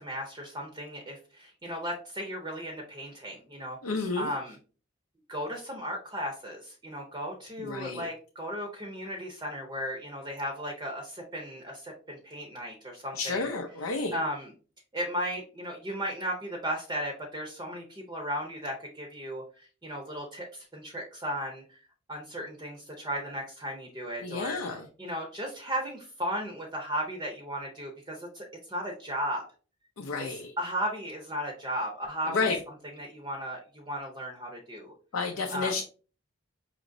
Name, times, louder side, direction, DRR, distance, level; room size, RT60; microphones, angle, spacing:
voice 1, 0.0-4.6 5.3-13.5 14.1-14.5 14.9-19.4 19.8-21.8 22.1-29.4 30.3-32.5 32.9-34.9 35.5-35.8, equal, 20° right, 1 dB, 0.6 m, -35 dB
voice 2, 3.8-4.3 7.6-8.1 13.1-14.2 24.2-24.9 30.0-30.5 32.2-32.6 35.1-35.8, left 4 dB, 85° left, 3 dB, 0.5 m, -31 dB
5.0 x 3.0 x 2.6 m, 0.38 s
head